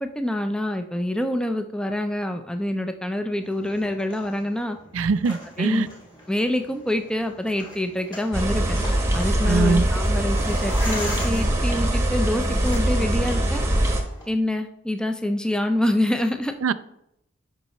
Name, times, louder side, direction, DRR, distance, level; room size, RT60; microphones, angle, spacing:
voice 1, 0.0-4.8 5.6-5.9 6.3-8.8 9.1-13.6 14.3-16.5, left 1 dB, 5° left, 7 dB, 0.5 m, -26 dB
sound 1, 3.4-14.3, left 1 dB, 20° left, 2.2 m, -40 dB
voice 2, 4.9-5.9 9.5-9.8 16.6-16.7, right 4 dB, 75° right, 15 dB, 0.4 m, -22 dB
sound 2, 8.3-14.0, right 1 dB, 15° right, 1.0 m, -22 dB
10.5 x 5.3 x 3.1 m, 0.79 s
head